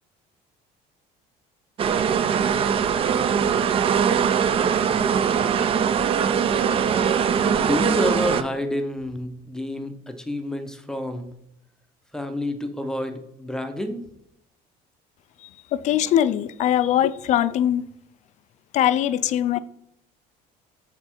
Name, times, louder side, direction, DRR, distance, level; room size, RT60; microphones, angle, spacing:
sound 1, 1.8-8.4, right 7 dB, 35° right, 0.4 m, -21 dB
voice 1, 7.5-11.3 12.1-14.0, left 1 dB, 5° left, 0.7 m, -28 dB
voice 2, 15.7-17.9 18.7-19.6, left 11 dB, 50° left, 0.4 m, -21 dB
6.6 x 4.3 x 4.4 m
cardioid pair, 130°, 16 cm